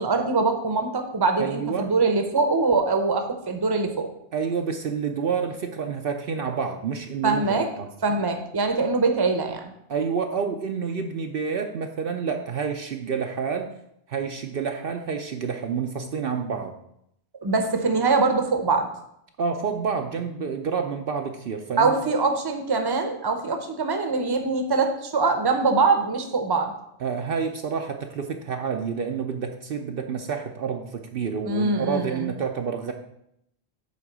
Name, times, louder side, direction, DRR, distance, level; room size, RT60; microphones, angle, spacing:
voice 1, 0.0-4.1 7.2-7.7 8.0-9.7 17.4-18.9 21.8-26.7 31.5-32.3, right 3 dB, 25° right, 5 dB, 0.8 m, -23 dB
voice 2, 1.4-1.9 4.3-7.9 9.9-13.7 14.1-16.7 19.4-22.0 27.0-32.9, right 6 dB, 60° right, 4 dB, 0.8 m, -28 dB
8.5 x 3.7 x 6.0 m, 0.76 s
omnidirectional pair, 1.1 m